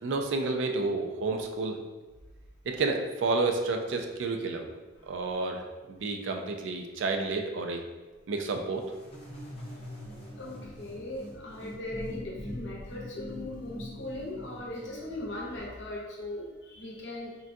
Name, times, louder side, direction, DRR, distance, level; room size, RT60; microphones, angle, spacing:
voice 1, 0.0-1.8 2.7-4.7 5.1-7.8 8.3-8.8, right 3 dB, 70° right, 4 dB, 0.4 m, -30 dB
sound 1, 8.8-15.6, left 1 dB, 30° left, 0.7 m, -43 dB
voice 2, 10.4-17.4, left 1 dB, 65° left, -3 dB, 0.7 m, -39 dB
3.7 x 2.2 x 2.6 m, 1.2 s
head